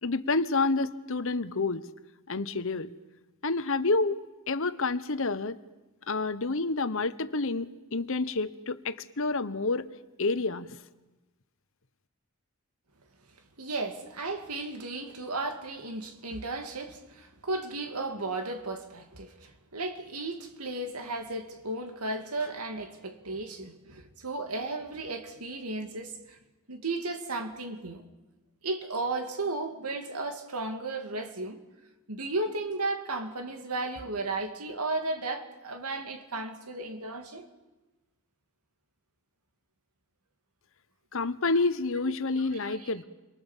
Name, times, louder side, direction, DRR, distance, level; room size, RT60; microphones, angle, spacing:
voice 1, 0.0-1.8 2.3-2.9 3.4-4.2 4.5-5.6 6.1-9.9 10.2-10.7 41.1-43.0, left 3 dB, 60° left, 1.1 m, -28 dB
voice 2, 13.6-26.4 26.7-28.1 28.6-31.6 32.1-37.5 42.1-42.2 42.6-42.9, right 2 dB, 90° right, 2.4 m, -34 dB
29.5 x 23.5 x 7.3 m
head